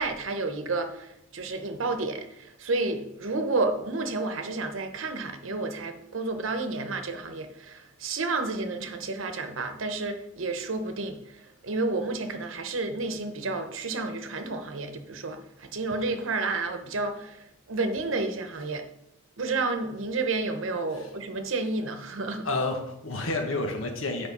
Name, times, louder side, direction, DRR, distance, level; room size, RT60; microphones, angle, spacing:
voice 1, 0.0-18.9 19.4-22.5, right 3 dB, 70° right, 7 dB, 0.9 m, -31 dB
voice 2, 22.4-24.3, left 2 dB, 80° left, 3 dB, 1.2 m, -30 dB
7.3 x 5.2 x 5.3 m, 0.79 s
head